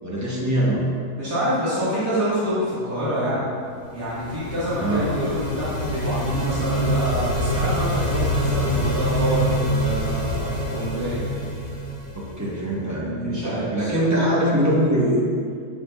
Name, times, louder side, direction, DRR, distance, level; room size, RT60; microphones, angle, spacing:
voice 1, 0.0-0.8 4.7-5.1 12.1-15.2, equal, 15° right, -5 dB, 0.6 m, -23 dB
voice 2, 1.2-3.5 3.9-11.2 12.8-14.0, equal, 75° right, -11 dB, 2.1 m, -27 dB
sound 1, 3.9-12.7, equal, 60° left, 2.1 m, -25 dB
6.8 x 6.1 x 2.2 m, 2.3 s
omnidirectional pair, 1.7 m